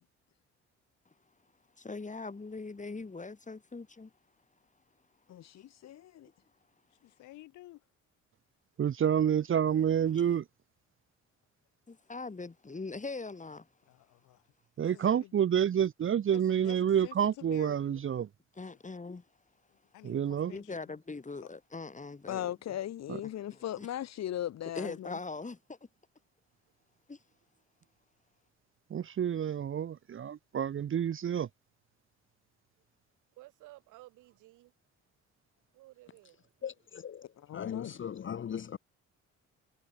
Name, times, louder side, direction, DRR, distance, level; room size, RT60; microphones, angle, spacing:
voice 1, 1.8-4.1 10.1-10.2 11.9-13.7 18.6-19.2 20.5-22.8 23.2-23.9 24.7-25.8 27.1-27.2, left 3 dB, 25° left, 7.9 m, -41 dB
voice 2, 5.3-6.3 22.3-25.2 37.5-37.9, left 12 dB, 60° left, 1.2 m, -38 dB
voice 3, 7.0-7.8 13.9-14.4 14.8-15.5 16.3-18.0 18.7-18.8 19.7-21.0, left 16 dB, 85° left, 4.4 m, -52 dB
voice 4, 8.8-10.4 14.8-18.3 20.0-20.5 23.1-23.2 28.9-31.5, right 9 dB, 45° right, 0.8 m, -28 dB
voice 5, 33.3-34.7 35.7-36.5, right 18 dB, 85° right, 7.0 m, -55 dB
voice 6, 36.6-38.8, left 8 dB, 40° left, 1.0 m, -39 dB
supercardioid pair, 75°, 30 cm